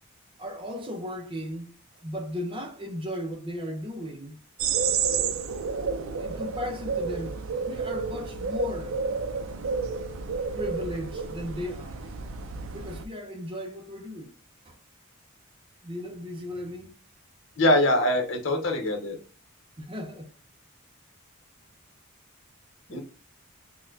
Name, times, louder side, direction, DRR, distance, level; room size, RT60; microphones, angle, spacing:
voice 1, 0.4-1.7 2.0-4.4 6.2-8.9 9.5-9.6 10.6-12.1 12.7-14.3 14.6-14.8 15.8-16.9 19.8-20.3 22.9-23.0, left 1 dB, 25° right, 0.6 m, -36 dB
sound 1, 4.6-13.0, right 5 dB, 75° right, 0.4 m, -30 dB
voice 2, 17.6-19.2 22.9-23.0, left 1 dB, 65° left, 0.9 m, -23 dB
4.1 x 2.2 x 2.6 m
head